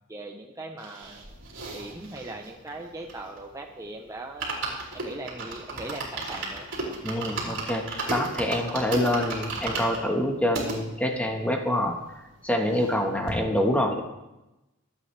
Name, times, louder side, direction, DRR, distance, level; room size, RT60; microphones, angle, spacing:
voice 1, 0.1-1.2 1.7-4.6 4.9-6.7, right 2 dB, 15° right, 2 dB, 0.8 m, -39 dB
sound 1, 0.8-3.6 3.9-4.0 4.2-10.8 11.4-11.5 11.6-11.7 12.0-13.0 13.3-13.4, right 3 dB, 60° right, 4.2 m, -35 dB
voice 2, 7.0-12.0 12.4-14.0, left 1 dB, 5° left, 2 dB, 1.4 m, -26 dB
24.5 x 8.6 x 3.4 m, 0.97 s
head